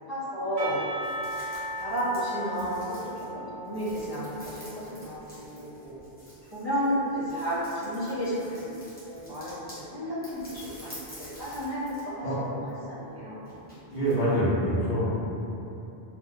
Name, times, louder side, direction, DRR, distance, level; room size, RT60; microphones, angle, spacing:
voice 1, 0.1-0.8 1.8-6.0 6.5-8.7 9.0-12.3 12.9-13.5, equal, 25° right, -14 dB, 0.7 m, -32 dB
Percussion / Church bell, 0.6-5.0, right 1 dB, 60° right, 1.0 m, -37 dB
sound 1, 1.0-9.8 10.2-12.1 12.4-14.2, equal, 10° left, 0.8 m, -49 dB
voice 2, 13.9-15.3, equal, 50° left, -11 dB, 0.7 m, -26 dB
2.5 x 2.2 x 3.4 m, 2.9 s
omnidirectional pair, 1.1 m